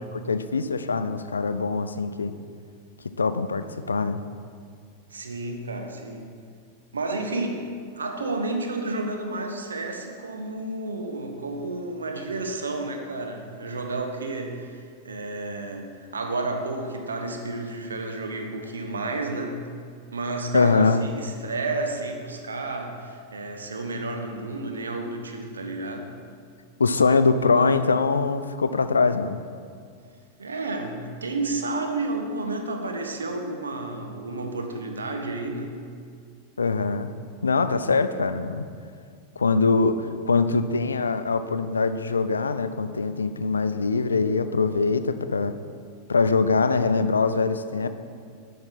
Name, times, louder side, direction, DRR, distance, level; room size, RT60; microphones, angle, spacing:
voice 1, 0.0-2.3 3.2-4.2 20.5-21.1 26.8-29.4 36.6-37.1 37.4-38.7 39.4-45.6 46.1-47.9, left 4 dB, 75° left, 11 dB, 0.4 m, -23 dB
voice 2, 5.1-6.3 6.9-7.6 7.9-19.6 20.1-26.1 30.4-35.8, right 2 dB, 70° right, 3 dB, 1.0 m, -31 dB
8.8 x 5.6 x 5.7 m, 2.2 s
figure-of-eight pair, 90°, 0 cm